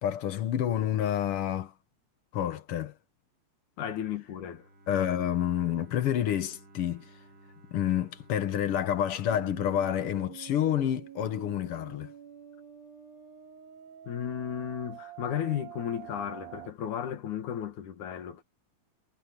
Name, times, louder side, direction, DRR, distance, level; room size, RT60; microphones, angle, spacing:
voice 1, 0.0-1.7 2.3-2.9 4.9-7.1 7.7-12.1, left 10 dB, 60° left, 1.7 m, -29 dB
voice 2, 3.8-4.7 14.1-18.4, left 9 dB, 85° left, 3.2 m, -34 dB
Bowed string instrument, 4.3-10.2, right 1 dB, 35° right, 2.4 m, -57 dB
sound 1, 9.3-16.7, right 12 dB, 85° right, 3.8 m, -47 dB
omnidirectional pair, 3.4 m